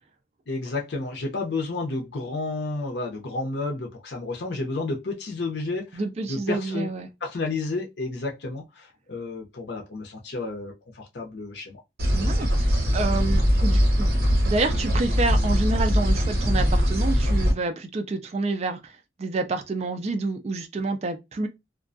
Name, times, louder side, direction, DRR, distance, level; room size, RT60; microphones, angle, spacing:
voice 1, 0.5-6.0 6.3-6.9 7.2-11.8, left 3 dB, 65° left, 0.6 m, -31 dB
voice 2, 5.9-7.1 12.1-14.1 14.5-21.5, right 3 dB, 35° right, 0.3 m, -28 dB
sound 1, 12.0-17.5, equal, 55° right, 0.9 m, -21 dB
2.4 x 2.2 x 2.5 m
head